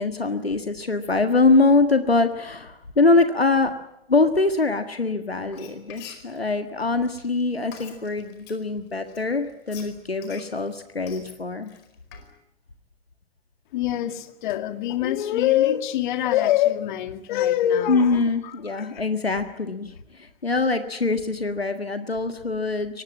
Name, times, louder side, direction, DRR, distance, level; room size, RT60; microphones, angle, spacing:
voice 1, 0.0-3.7 4.1-11.7 17.9-23.0, left 3 dB, 90° left, 8 dB, 1.7 m, -23 dB
Frying (food), 5.4-8.6 9.1-12.3, left 9 dB, 35° left, 4.8 m, -46 dB
voice 2, 13.7-19.0, left 12 dB, 55° left, 9 dB, 2.2 m, -24 dB
23.5 x 19.5 x 9.5 m, 0.83 s
figure-of-eight pair, 100°, 30 cm